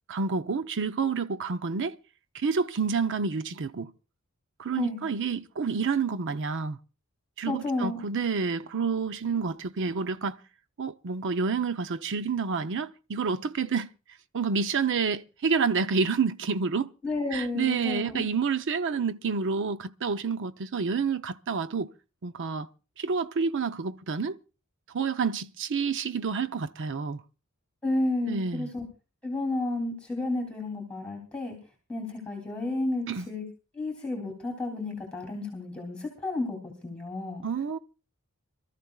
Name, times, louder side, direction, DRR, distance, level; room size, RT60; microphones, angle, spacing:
voice 1, 0.1-2.0 2.3-3.9 4.6-6.8 7.4-10.4 10.8-13.9 14.3-16.9 17.3-21.9 22.2-22.7 23.0-24.4 24.9-27.2 28.2-28.7 33.1-33.3 37.4-37.8, right 5 dB, 55° right, 0.6 m, -29 dB
voice 2, 7.4-8.0 17.0-18.3 27.8-28.8 29.2-31.6 31.9-33.4 33.7-37.4, left 2 dB, 5° left, 3.0 m, -31 dB
26.0 x 13.5 x 2.4 m
head